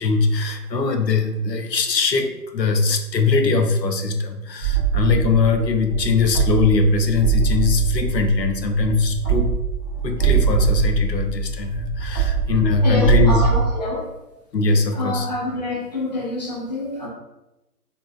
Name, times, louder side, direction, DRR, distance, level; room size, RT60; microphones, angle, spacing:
voice 1, 0.0-9.5 10.0-13.5 14.5-15.3, left 4 dB, 90° left, 5 dB, 0.8 m, -21 dB
sound 1, 4.6-13.6, right 7 dB, ahead, 0.9 m, -23 dB
voice 2, 12.8-14.1 14.9-17.1, left 1 dB, 25° left, -3 dB, 0.6 m, -26 dB
4.1 x 3.3 x 2.2 m, 0.95 s
figure-of-eight pair, 155°, 49 cm